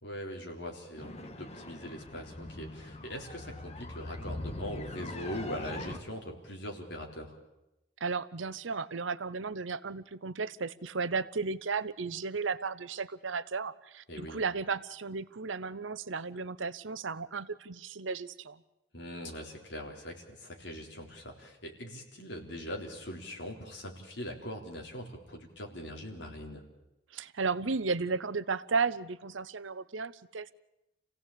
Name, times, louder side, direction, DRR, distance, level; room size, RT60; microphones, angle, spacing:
voice 1, 0.0-7.4 14.1-14.4 18.9-26.6, equal, 60° left, 1 dB, 3.7 m, -41 dB
sound 1, 1.0-6.0, left 2 dB, 35° left, 1.6 m, -42 dB
voice 2, 8.0-18.6 27.1-30.5, right 4 dB, 75° right, 15 dB, 0.8 m, -34 dB
27.0 x 16.5 x 8.6 m, 0.93 s
head